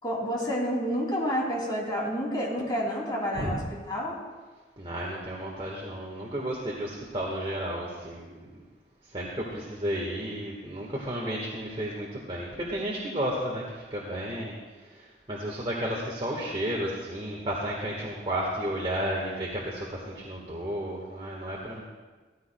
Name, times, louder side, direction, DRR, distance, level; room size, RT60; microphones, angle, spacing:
voice 1, 0.0-3.6 3.9-4.2, equal, 25° left, -3 dB, 2.7 m, -29 dB
voice 2, 4.8-8.6 9.0-21.8, right 1 dB, 30° right, -3 dB, 1.4 m, -33 dB
15.5 x 14.0 x 2.2 m, 1.4 s
head